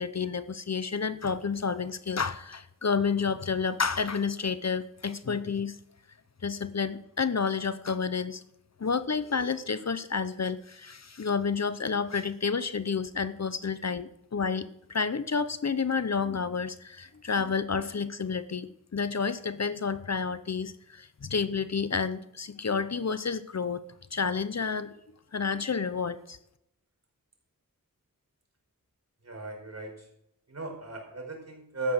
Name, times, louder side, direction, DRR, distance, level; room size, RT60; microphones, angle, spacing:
voice 1, 0.0-5.8 6.4-8.4 8.8-23.8 24.1-24.9 25.3-26.4, left 5 dB, 50° left, 13 dB, 0.8 m, -30 dB
voice 2, 29.2-29.9 30.5-31.9, right 2 dB, 50° right, 1 dB, 5.0 m, -35 dB
14.0 x 9.4 x 6.5 m, 0.79 s
wide cardioid pair, 90°, 34 cm